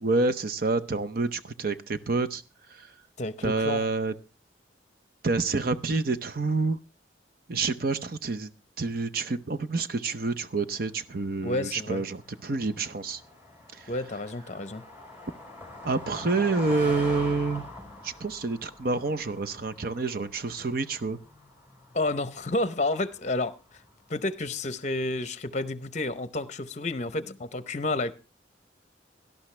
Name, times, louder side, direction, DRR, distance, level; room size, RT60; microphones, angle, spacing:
voice 1, 0.0-2.4 2.7-2.9 3.4-4.1 5.2-6.8 7.5-8.5 8.8-13.2 13.7-13.8 15.8-17.6 18.0-21.2, right 3 dB, 50° right, 0.7 m, -28 dB
voice 2, 3.2-3.8 11.4-12.0 13.9-14.8 21.9-23.6 24.1-28.1, left 2 dB, 40° left, 0.8 m, -30 dB
Car passing by, 10.5-24.0, left 2 dB, 10° right, 4.8 m, -45 dB
17.5 x 12.0 x 3.3 m
head